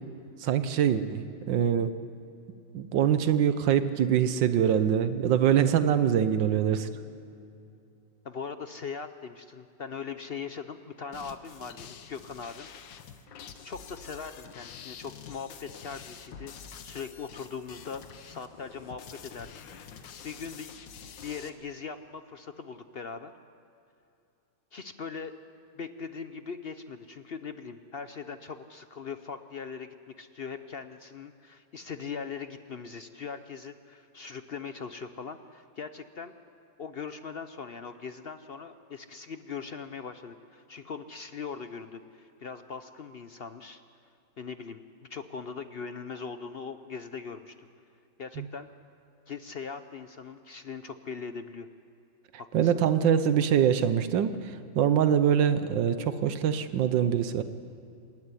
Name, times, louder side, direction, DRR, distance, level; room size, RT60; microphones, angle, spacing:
voice 1, 0.4-1.9 2.7-6.9 48.4-48.5 52.5-57.4, right 9 dB, 85° right, 11 dB, 1.5 m, -24 dB
voice 2, 8.2-12.7 13.6-16.5 16.8-19.5 19.9-20.7 21.2-23.3 24.7-25.3 25.7-36.3 36.8-43.8 44.4-44.8 45.1-47.7 48.2-48.7 49.3-51.7 52.4-52.7, left 5 dB, 60° left, 10 dB, 0.6 m, -40 dB
sound 1, 11.1-21.5, left 7 dB, 85° left, 1.8 m, -47 dB
26.5 x 12.0 x 9.8 m, 2.7 s
omnidirectional pair, 2.0 m